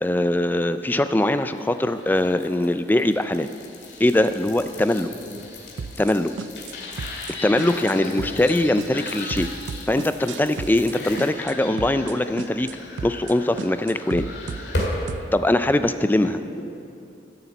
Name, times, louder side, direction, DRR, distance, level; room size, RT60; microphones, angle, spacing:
voice 1, 0.0-3.5 4.0-5.1 6.0-6.3 7.4-9.5 9.9-12.7 13.0-14.3 15.3-16.4, left 1 dB, 10° left, 10 dB, 0.3 m, -21 dB
sound 1, 1.5-15.2, left 2 dB, 75° left, 2.1 m, -36 dB
voice 2, 5.0-5.4 7.8-8.4 16.2-16.6, left 1 dB, 50° left, -2 dB, 1.9 m, -38 dB
sound 2, 5.8-6.1 6.4-6.7 7.0-7.3 7.6-7.9 8.2-8.5 8.8-10.9 11.2-11.5 11.8-12.1 12.4-12.7 13.0-13.3 13.6-15.3, right 5 dB, 90° right, 0.4 m, -34 dB
13.0 x 7.1 x 7.0 m, 2.6 s
head